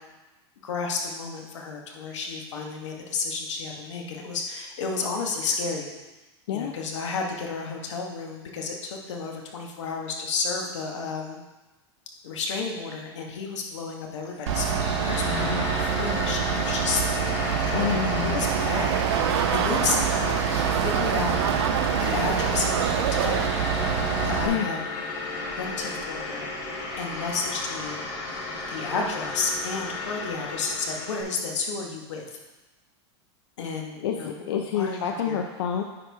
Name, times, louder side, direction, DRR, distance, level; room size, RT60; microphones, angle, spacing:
voice 1, 0.6-5.9 6.5-11.4 12.2-21.4 22.0-23.5 24.2-24.8 25.6-26.5 27.0-28.0 28.7-32.4 33.6-34.3 34.7-35.4, left 4 dB, 85° left, 1 dB, 1.4 m, -32 dB
sound 1, 14.2-31.2, left 2 dB, 25° left, 0.9 m, -34 dB
Bus / Idling, 14.5-24.5, right 6 dB, 80° right, 1.1 m, -27 dB
voice 2, 15.2-15.7 17.7-18.4 24.4-24.7 34.0-35.8, left 8 dB, 60° left, 3 dB, 0.5 m, -28 dB
sound 2, 18.4-23.5, right 11 dB, 65° right, 0.4 m, -28 dB
9.6 x 4.6 x 3.5 m, 1.1 s
supercardioid pair, 180°, 15 cm